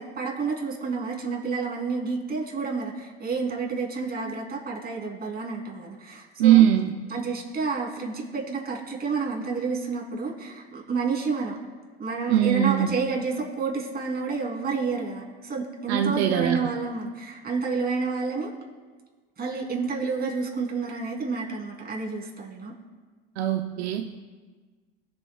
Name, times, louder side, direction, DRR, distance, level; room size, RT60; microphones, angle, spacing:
voice 1, 0.0-6.6 7.1-11.6 12.0-18.5 19.4-22.7, right 4 dB, 30° right, -1 dB, 2.9 m, -30 dB
voice 2, 6.4-6.9 12.3-12.9 15.9-16.6 23.4-24.1, right 11 dB, 85° right, 5 dB, 0.7 m, -20 dB
22.5 x 7.6 x 2.3 m, 1.4 s
hypercardioid pair, 80°, 32 cm